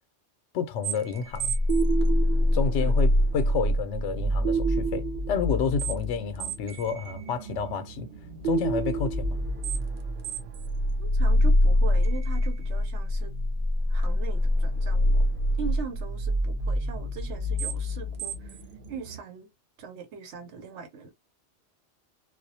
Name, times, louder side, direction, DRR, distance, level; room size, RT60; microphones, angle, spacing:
voice 1, 0.5-1.6 2.5-8.1 8.4-9.4, left 6 dB, 90° left, 0.9 m, -30 dB
sound 1, 0.8-19.2, equal, 55° right, 0.7 m, -26 dB
voice 2, 11.0-13.3 13.9-15.2 15.6-18.6 18.9-19.5 19.8-21.1, right 5 dB, 85° right, 1.0 m, -40 dB
2.3 x 2.1 x 2.7 m
omnidirectional pair, 1.2 m